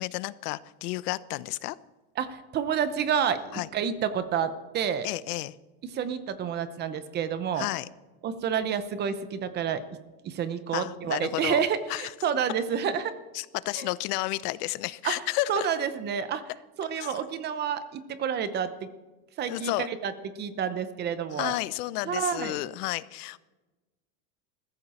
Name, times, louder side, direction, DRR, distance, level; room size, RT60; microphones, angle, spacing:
voice 1, 0.0-1.8 3.5-3.7 5.0-5.6 7.5-7.9 10.7-11.6 11.9-12.1 13.3-15.7 17.0-17.2 19.5-19.9 21.3-23.4, left 18 dB, 85° left, 17 dB, 0.9 m, -31 dB
voice 2, 2.2-5.1 5.9-7.7 8.2-9.8 10.2-13.1 13.8-13.9 15.0-15.2 15.5-16.4 16.8-18.9 19.4-21.5 22.0-22.6, right 8 dB, 25° right, 12 dB, 0.7 m, -29 dB
21.5 x 14.5 x 4.3 m, 1.2 s
cardioid pair, 170°, 44 cm